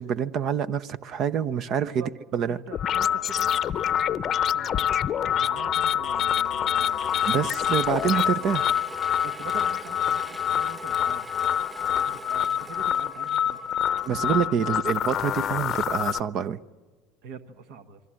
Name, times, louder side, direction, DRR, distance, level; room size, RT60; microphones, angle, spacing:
voice 1, 0.0-2.0 2.3-2.6 7.2-8.7 14.1-16.6, right 8 dB, 50° right, 15 dB, 0.8 m, -26 dB
voice 2, 1.8-2.1 2.5-4.8 5.2-7.7 8.0-8.7 9.2-11.3 11.9-13.8 14.3-14.6 17.2-18.0, right 6 dB, 65° right, 9 dB, 1.5 m, -44 dB
sound 1, 2.7-16.2, left 9 dB, 40° left, 0.7 m, -26 dB
Mechanisms / Drill, 6.4-15.0, equal, 10° right, 1.1 m, -44 dB
27.0 x 22.5 x 7.7 m, 1.3 s
hypercardioid pair, 75°, 0 cm